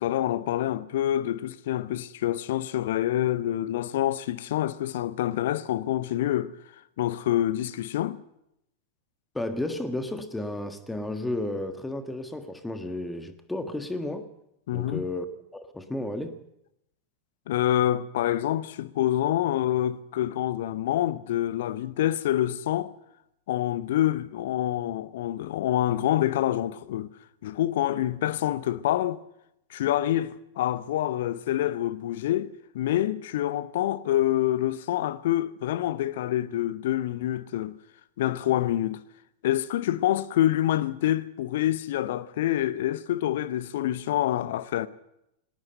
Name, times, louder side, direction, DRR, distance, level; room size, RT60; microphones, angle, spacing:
voice 1, 0.0-6.5 7.0-8.2 14.7-15.0 17.5-22.9 23.5-27.1 27.4-29.2 29.7-37.7 38.2-39.0 39.4-44.9, left 13 dB, 55° left, 0.8 m, -26 dB
voice 2, 9.3-14.3 14.7-15.2 15.5-16.4, left 1 dB, 5° left, 1.5 m, -32 dB
19.5 x 18.5 x 7.8 m
figure-of-eight pair, 90°, 0 cm